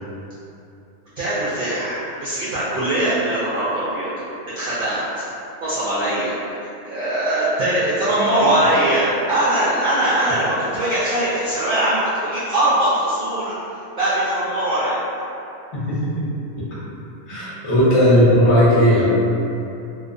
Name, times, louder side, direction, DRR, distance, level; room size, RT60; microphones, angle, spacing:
voice 1, 1.2-4.1 4.5-5.2 5.6-15.1, right 1 dB, 65° right, -10 dB, 0.5 m, -21 dB
voice 2, 15.7-16.3 16.6-16.7 17.3-19.1, equal, 30° left, -10 dB, 0.6 m, -16 dB
2.3 x 2.2 x 2.5 m, 2.7 s
omnidirectional pair, 1.3 m